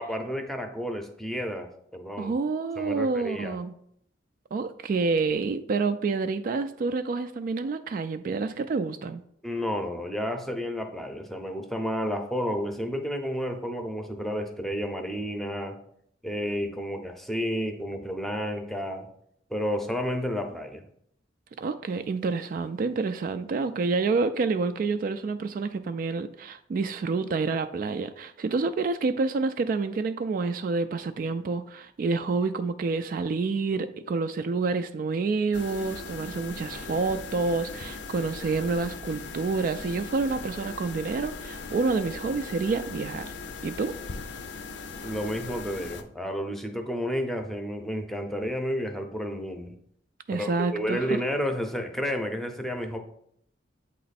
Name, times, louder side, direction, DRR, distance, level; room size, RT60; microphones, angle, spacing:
voice 1, 0.0-2.3 2.8-3.6 9.4-15.8 16.2-19.1 19.5-20.8 45.0-49.7 50.3-53.0, equal, ahead, 0.6 m, -31 dB
voice 2, 2.2-3.8 4.5-9.2 21.6-43.3 43.6-44.0 50.3-51.1, right 4 dB, 50° right, 0.3 m, -28 dB
sound 1, 35.5-46.0, left 4 dB, 70° left, 0.6 m, -39 dB
7.7 x 3.1 x 4.1 m
head